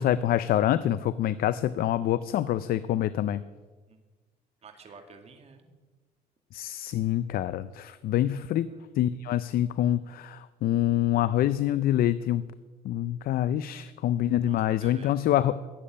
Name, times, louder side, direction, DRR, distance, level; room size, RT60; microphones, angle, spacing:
voice 1, 0.0-3.4 6.5-12.4 12.8-15.6, left 12 dB, 60° left, 15 dB, 0.5 m, -26 dB
voice 2, 4.6-5.7 8.2-8.8 14.5-15.2, right 4 dB, 40° right, 5 dB, 1.9 m, -51 dB
13.0 x 8.6 x 8.5 m, 1.4 s
cardioid pair, 110°, 17 cm